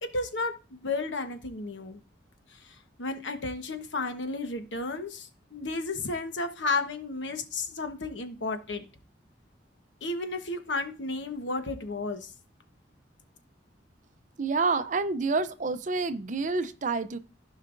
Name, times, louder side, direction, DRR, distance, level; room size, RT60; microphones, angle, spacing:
voice 1, 0.0-2.0 2.6-8.9 10.0-12.3, left 3 dB, 90° left, 7 dB, 1.2 m, -33 dB
voice 2, 14.4-17.2, right 4 dB, 45° right, 12 dB, 0.6 m, -28 dB
15.0 x 5.5 x 2.6 m, 0.33 s
head